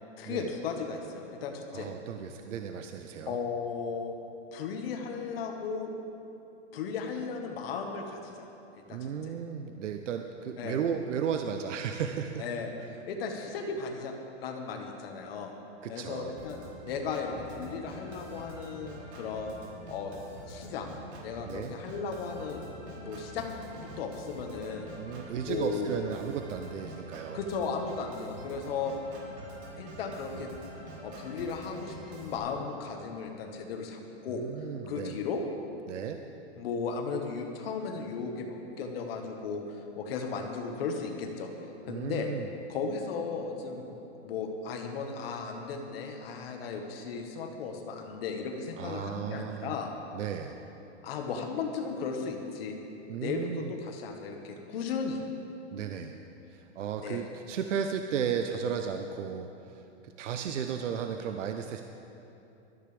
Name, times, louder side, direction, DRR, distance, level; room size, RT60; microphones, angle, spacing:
voice 1, 0.2-1.9 3.3-4.1 4.5-5.9 6.7-8.5 8.9-9.3 10.6-10.8 12.4-12.7 12.9-15.5 15.9-16.6 16.9-19.5 19.9-20.1 20.5-20.9 21.2-22.6 23.0-23.5 24.0-24.9 25.5-26.0 27.3-28.9 29.8-30.5 31.0-34.4 34.9-35.4 36.6-41.5 41.9-42.3 42.7-49.9 51.0-52.7 53.2-55.2 57.0-57.2, left 5 dB, 55° left, 3 dB, 1.6 m, -35 dB
voice 2, 1.7-3.4 8.9-12.4 15.8-16.3 21.4-21.7 25.0-27.4 34.3-35.2 35.9-36.2 41.9-42.5 48.8-49.7 50.1-50.6 53.1-53.7 55.7-56.2 56.5-61.8, right 7 dB, 80° right, 6 dB, 0.9 m, -34 dB
Organ, 16.4-32.4, right 1 dB, 60° right, 3.7 m, -46 dB
18.5 x 13.5 x 3.4 m, 2.9 s
hypercardioid pair, 155°, 36 cm